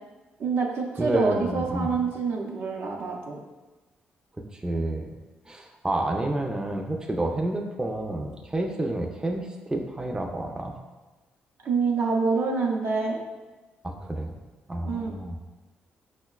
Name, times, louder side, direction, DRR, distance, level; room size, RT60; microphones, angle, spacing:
voice 1, 0.4-3.4 11.6-13.2 14.8-15.1, right 4 dB, 65° right, -1 dB, 0.6 m, -26 dB
voice 2, 1.0-1.9 4.5-5.1 5.5-10.7 13.8-14.3 14.7-15.4, right 1 dB, 15° right, 2 dB, 0.4 m, -29 dB
5.5 x 2.1 x 2.2 m, 1.2 s
supercardioid pair, 55°, 4 cm